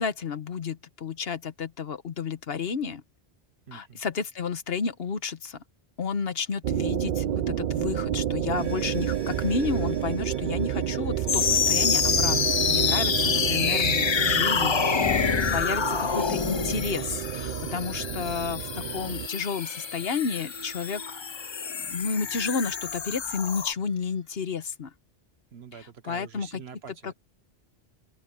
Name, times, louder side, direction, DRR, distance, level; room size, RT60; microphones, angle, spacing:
voice 1, 0.0-3.0 3.7-5.6 6.0-21.2 21.9-24.9 26.0-26.6 27.0-27.1, left 5 dB, 70° left, 1.3 m, -31 dB
voice 2, 3.7-4.0 14.7-15.0 17.8-18.3 25.5-27.1, right 7 dB, 80° right, 1.4 m, -46 dB
sound 1, 6.6-19.3, right 10 dB, 60° right, 0.6 m, -30 dB
sound 2, 8.6-24.2, equal, 25° right, 3.2 m, -47 dB
sound 3, 11.3-23.7, left 7 dB, 45° left, 0.3 m, -27 dB
open air
omnidirectional pair, 1.1 m